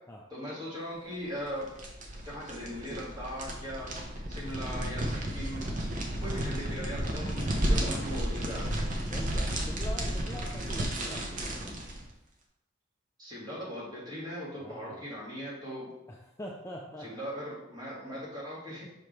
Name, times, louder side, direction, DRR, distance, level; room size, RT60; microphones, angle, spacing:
voice 1, 0.3-1.7 2.2-3.9 4.3-5.7 6.2-8.7 13.2-15.9 17.0-18.8, equal, 20° right, -6 dB, 1.9 m, -39 dB
sound 1, 1.4-12.0, right 1 dB, 35° right, 0.8 m, -33 dB
voice 2, 6.1-6.6 9.1-11.7 14.6-15.1 16.1-17.1, left 1 dB, 15° left, -2 dB, 0.4 m, -44 dB
5.8 x 5.1 x 3.1 m, 0.89 s
head